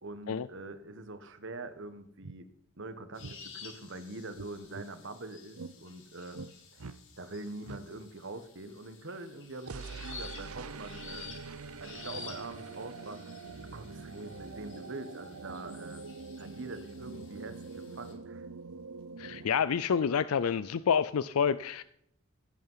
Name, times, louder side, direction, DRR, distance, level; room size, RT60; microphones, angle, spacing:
voice 1, 0.0-2.5 2.8-6.4 6.7-6.8 7.2-11.3 11.8-13.2 13.7-16.0 16.4-18.5, right 2 dB, 60° right, 11 dB, 1.3 m, -44 dB
sound 1, 1.8-1.9 2.2-2.4 3.2-3.4 4.3-4.9 5.6-5.8 6.3-6.5 6.8-7.0 7.7-7.8 9.6-19.5, right 4 dB, 80° right, 0.7 m, -44 dB
sound 2, 3.1-18.1, left 6 dB, 60° left, 2.7 m, -51 dB
voice 2, 19.2-21.8, left 7 dB, 80° left, 16 dB, 0.4 m, -28 dB
16.0 x 8.9 x 5.6 m, 0.74 s
head